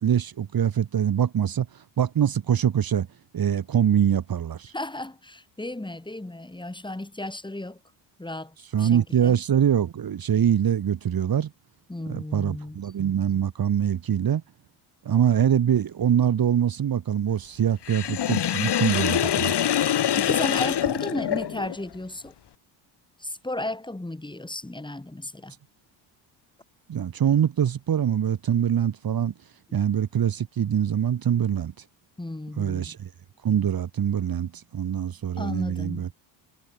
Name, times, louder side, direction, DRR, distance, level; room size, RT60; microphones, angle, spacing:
voice 1, 0.0-1.7 2.0-3.1 3.3-4.7 8.7-11.5 12.1-14.4 15.0-19.6 26.9-29.3 29.7-31.7 32.6-33.1 33.4-36.1, right 9 dB, 45° right, 2.9 m, -24 dB
voice 2, 4.7-7.8 8.2-9.4 11.9-12.8 20.2-22.3 23.2-25.5 29.7-29.8 32.2-32.9 35.4-36.1, left 1 dB, 10° left, 6.5 m, -34 dB
Sink (filling or washing), 17.8-21.8, left 10 dB, 55° left, 5.3 m, -24 dB
supercardioid pair, 85°, 48 cm